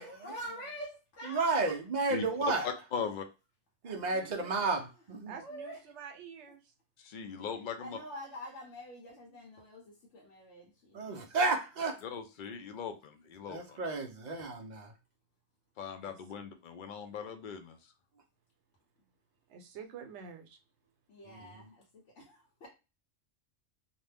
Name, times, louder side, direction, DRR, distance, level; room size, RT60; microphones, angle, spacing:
voice 1, 0.0-1.7 2.3-2.5 5.3-5.8 7.3-7.5 7.8-11.2 14.4-14.5 21.1-21.8 22.1-22.7, equal, 85° left, 1.1 m, -46 dB
voice 2, 1.3-2.7 3.8-5.3 10.9-12.0 13.5-14.9 21.3-21.4, right 3 dB, 55° right, 0.5 m, -32 dB
voice 3, 2.9-3.3 7.0-8.0 12.0-13.8 15.8-17.8, left 6 dB, 55° left, 0.6 m, -40 dB
voice 4, 3.8-4.5 5.3-6.6 16.0-16.5 19.5-20.6, right 7 dB, 75° right, 0.9 m, -49 dB
2.6 x 2.1 x 3.3 m
omnidirectional pair, 1.2 m